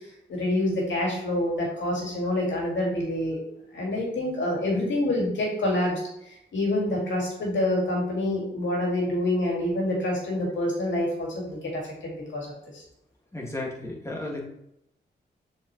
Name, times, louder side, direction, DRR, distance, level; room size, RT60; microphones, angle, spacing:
voice 1, 0.3-3.4 3.7-6.0 6.5-12.5 12.7-12.8, left 1 dB, 75° left, -2 dB, 2.4 m, -27 dB
voice 2, 13.3-14.4, left 2 dB, 15° left, -2 dB, 2.3 m, -33 dB
6.8 x 4.7 x 3.2 m, 0.80 s
cardioid pair, 50°, 19 cm